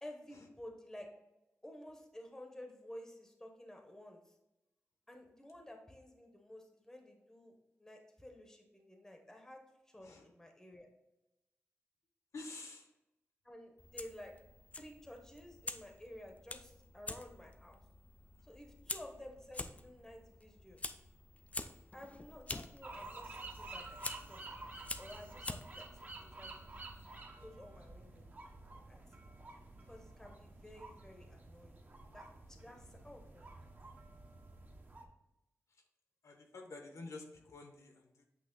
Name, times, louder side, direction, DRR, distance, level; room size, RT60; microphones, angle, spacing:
voice 1, 0.0-1.1 1.6-4.3 5.1-10.9 13.4-14.3 14.8-17.8 18.4-20.8 21.9-24.0 24.3-26.8 27.4-28.3 28.9-29.3 29.9-31.8 32.1-33.5, left 1 dB, 10° left, 3 dB, 0.8 m, -53 dB
voice 2, 12.3-12.9 35.7-35.8 36.2-38.2, left 3 dB, 80° left, 3 dB, 1.1 m, -50 dB
Fire, 13.8-27.2, left 3 dB, 25° left, 0.4 m, -48 dB
sound 1, 22.8-35.0, right 2 dB, 35° right, 0.8 m, -51 dB
8.2 x 3.1 x 3.8 m, 0.92 s
wide cardioid pair, 175°, 5 cm